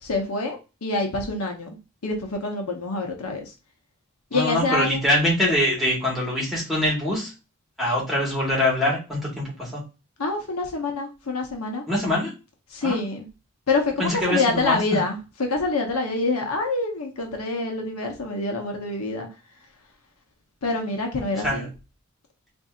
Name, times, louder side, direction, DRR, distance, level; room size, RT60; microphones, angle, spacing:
voice 1, 0.0-1.8 2.0-3.5 4.3-5.0 10.2-11.8 12.7-13.3 13.7-19.3 20.6-21.7, left 3 dB, 80° left, 3 dB, 0.9 m, -26 dB
voice 2, 4.3-7.3 7.8-9.8 11.9-12.3 12.8-13.1 14.0-14.8 21.4-21.7, left 1 dB, ahead, -5 dB, 1.5 m, -24 dB
4.0 x 2.7 x 2.4 m, 0.29 s
head